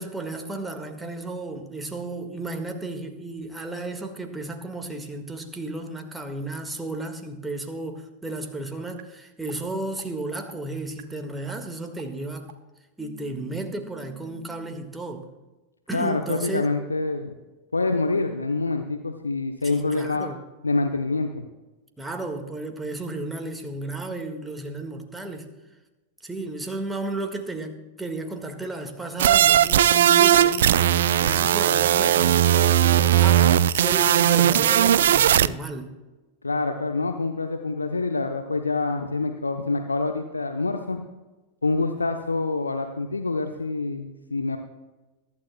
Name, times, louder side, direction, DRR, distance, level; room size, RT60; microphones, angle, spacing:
voice 1, 0.0-12.5 13.0-15.3 15.9-16.7 19.6-20.4 22.0-25.5 26.2-35.9, right 2 dB, 5° right, 1.7 m, -33 dB
sound 1, 9.0-9.1 9.5-9.6 10.0-10.1 10.5-10.6 11.0-11.1 11.5-11.6 12.0-12.1 12.5-12.6 13.0-14.7, right 8 dB, 45° right, 1.3 m, -46 dB
voice 2, 15.9-17.3 17.7-20.3 20.6-21.4 34.1-34.3 36.4-41.0 41.6-44.6, left 3 dB, 80° left, 0.8 m, -26 dB
sound 2, 29.2-35.5, right 11 dB, 60° right, 0.4 m, -18 dB
22.5 x 12.0 x 2.2 m
figure-of-eight pair, 90°, 0 cm